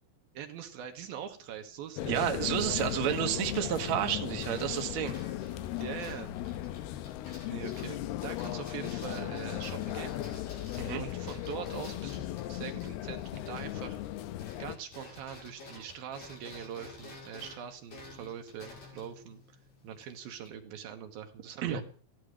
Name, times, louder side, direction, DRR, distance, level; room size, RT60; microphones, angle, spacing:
voice 1, 0.3-2.3 5.5-5.6 5.8-6.3 7.5-10.2 11.0-14.0 14.6-19.4 19.8-21.8, right 9 dB, 75° right, 6 dB, 3.0 m, -43 dB
sound 1, 2.0-14.8, left 13 dB, 90° left, 2.9 m, -37 dB
voice 2, 2.1-5.2 10.8-11.0 21.6-21.8, right 10 dB, 55° right, 5 dB, 2.3 m, -30 dB
sound 2, 2.8-14.1 14.4-20.5, left 2 dB, 65° left, 7.2 m, -51 dB
15.5 x 12.0 x 6.5 m, 0.41 s
omnidirectional pair, 4.4 m